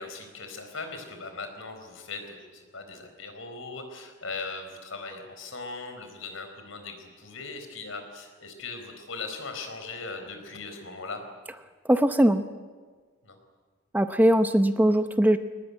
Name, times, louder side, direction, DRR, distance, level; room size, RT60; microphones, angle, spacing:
voice 1, 0.0-11.2 13.2-13.4, left 3 dB, 75° left, 6 dB, 4.4 m, -39 dB
voice 2, 11.9-12.4 13.9-15.4, right 1 dB, 10° right, 9 dB, 0.7 m, -20 dB
22.5 x 19.5 x 9.7 m, 1.5 s
head